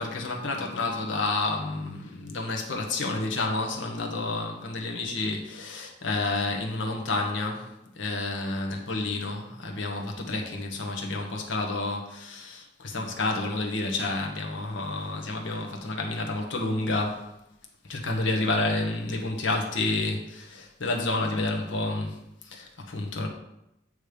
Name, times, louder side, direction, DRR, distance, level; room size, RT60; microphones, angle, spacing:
voice 1, 0.0-17.3 17.8-22.2 22.4-23.3, left 2 dB, 80° left, 1 dB, 1.2 m, -30 dB
8.4 x 3.2 x 5.1 m, 0.85 s
head